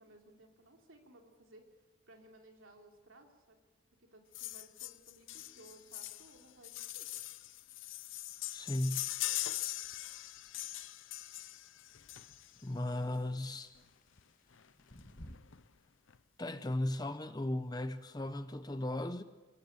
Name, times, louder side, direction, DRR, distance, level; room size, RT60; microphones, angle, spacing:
voice 1, 0.0-1.7 2.1-3.6 4.0-7.1 12.5-13.0 16.5-16.7, right 1 dB, 85° right, 3.1 m, -60 dB
sound 1, 4.3-12.7 13.8-13.9 14.2-14.3 14.5-14.7 15.0-15.6 16.1-16.2, left 15 dB, 75° left, 0.7 m, -41 dB
voice 2, 8.5-9.1 12.6-13.7 16.4-19.2, left 1 dB, 20° left, 0.7 m, -36 dB
sound 2, 9.6-15.4, left 1 dB, 40° left, 1.7 m, -59 dB
24.5 x 15.5 x 8.0 m
head